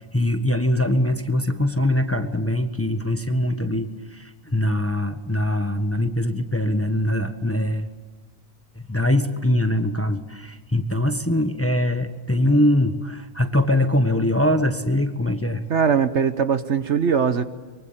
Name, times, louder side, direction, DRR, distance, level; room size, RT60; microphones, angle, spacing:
voice 1, 0.1-7.9 8.9-15.6, left 1 dB, 10° left, 7 dB, 1.3 m, -22 dB
voice 2, 15.7-17.4, right 6 dB, 60° right, 11 dB, 1.3 m, -20 dB
24.0 x 23.5 x 8.9 m, 1.4 s
omnidirectional pair, 1.4 m